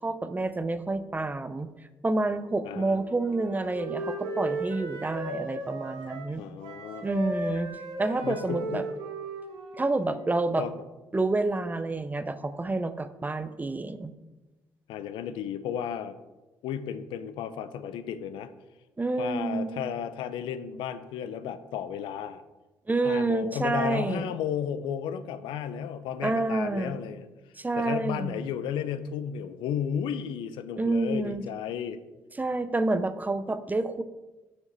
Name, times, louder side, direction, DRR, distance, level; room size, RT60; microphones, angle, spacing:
voice 1, 0.0-1.7 2.0-6.4 7.0-7.7 8.0-8.8 9.8-10.6 11.1-14.1 19.0-19.8 22.9-24.3 26.2-27.0 27.6-28.4 30.8-31.4 32.4-34.0, right 2 dB, 20° right, 12 dB, 0.6 m, -28 dB
voice 2, 2.6-3.0 6.4-7.1 8.2-8.8 10.6-10.7 14.9-16.2 16.6-18.5 19.2-22.4 23.0-27.3 27.7-32.0, left 8 dB, 80° left, 12 dB, 0.5 m, -33 dB
Wind instrument woodwind instrument, 2.8-6.4 6.6-10.5, right 2 dB, 85° right, 1.3 m, -36 dB
6.4 x 5.9 x 4.0 m, 1.1 s
supercardioid pair, 60°, 8 cm